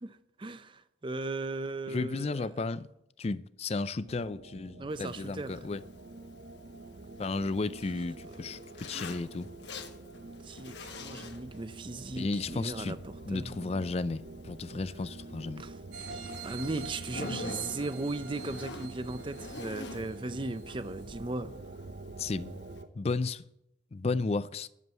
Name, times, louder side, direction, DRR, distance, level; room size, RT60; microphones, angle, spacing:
voice 1, 0.0-2.6 4.8-5.6 8.3-8.7 10.3-13.0 13.3-13.5 15.6-15.7 16.4-21.5, right 2 dB, 25° right, 0.5 m, -37 dB
voice 2, 1.9-2.9 3.2-5.8 7.2-9.5 12.2-13.0 13.3-15.6 22.2-22.5 22.9-23.4 23.9-24.7, left 3 dB, 35° left, 0.4 m, -33 dB
sound 1, 4.0-22.9, right 2 dB, 60° right, 0.8 m, -47 dB
Zipper (clothing), 4.9-22.8, left 3 dB, 65° left, 1.3 m, -48 dB
sound 2, 15.9-20.7 21.1-21.2, right 5 dB, 80° right, 4.4 m, -46 dB
11.0 x 7.3 x 8.1 m
head